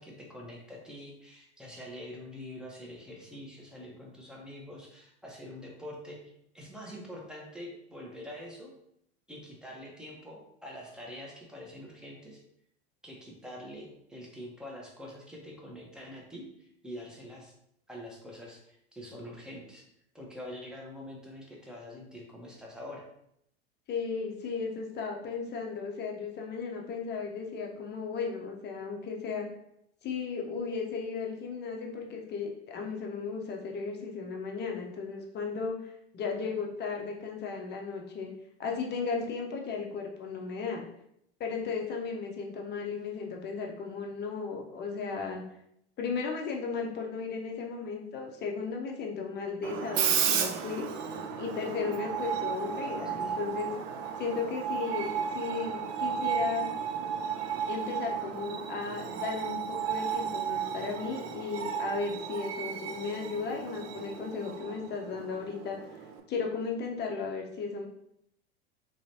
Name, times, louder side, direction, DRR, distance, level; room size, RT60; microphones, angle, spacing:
voice 1, 0.0-8.7 9.3-12.4 13.0-17.5 17.9-19.8 20.1-23.1 53.2-53.4, left 1 dB, ahead, -2 dB, 0.8 m, -45 dB
voice 2, 23.9-29.5 30.0-35.8 36.1-38.3 38.6-40.9 41.4-45.4 46.0-50.9 51.4-53.7 54.2-56.7 57.7-65.8 66.3-67.8, left 5 dB, 30° left, 1 dB, 0.7 m, -35 dB
Screech, 49.6-66.2, right 8 dB, 40° right, 0.4 m, -34 dB
3.1 x 3.0 x 2.7 m, 0.74 s
hypercardioid pair, 90°, 34 cm